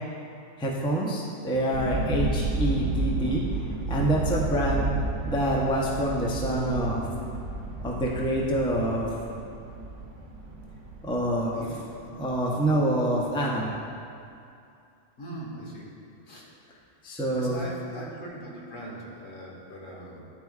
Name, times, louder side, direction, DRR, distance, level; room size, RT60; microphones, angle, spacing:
voice 1, 0.6-3.4 3.9-4.9 5.2-7.0 7.8-9.1 11.0-11.6 12.2-13.7 17.0-17.6, right 1 dB, 5° left, -3 dB, 0.4 m, -26 dB
sound 1, 1.7-13.3, right 2 dB, 70° right, 1.1 m, -32 dB
voice 2, 11.5-11.8 15.2-15.9 16.2-16.5 17.3-20.2, right 1 dB, 80° left, -4 dB, 1.6 m, -40 dB
10.5 x 4.5 x 2.4 m, 2.5 s
omnidirectional pair, 1.3 m